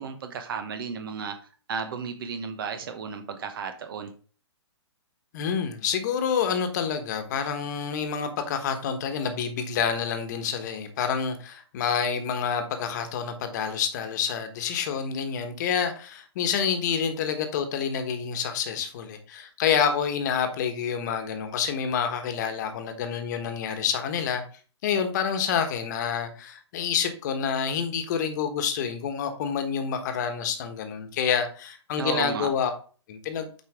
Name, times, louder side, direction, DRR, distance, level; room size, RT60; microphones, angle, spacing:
voice 1, 0.0-1.4 1.7-4.1 32.0-32.5, right 6 dB, 50° right, 1.0 m, -33 dB
voice 2, 5.3-24.4 24.8-32.7 33.1-33.5, left 7 dB, 40° left, 1.3 m, -28 dB
8.0 x 5.0 x 3.6 m
hypercardioid pair, 155°, 15 cm